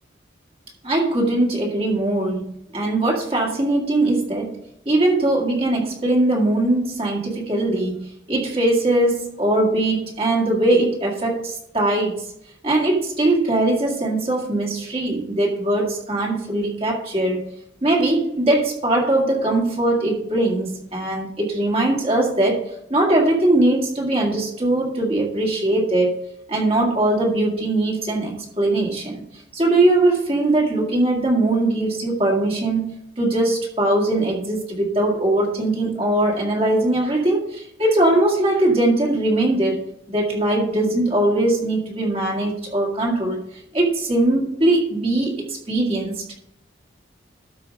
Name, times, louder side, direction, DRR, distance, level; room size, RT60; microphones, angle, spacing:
voice 1, 0.8-4.6 4.9-12.3 12.6-17.5 17.8-22.6 22.9-26.2 26.5-29.2 29.5-46.2, right 1 dB, 30° right, -1 dB, 1.9 m, -21 dB
12.5 x 4.9 x 5.2 m, 0.78 s
head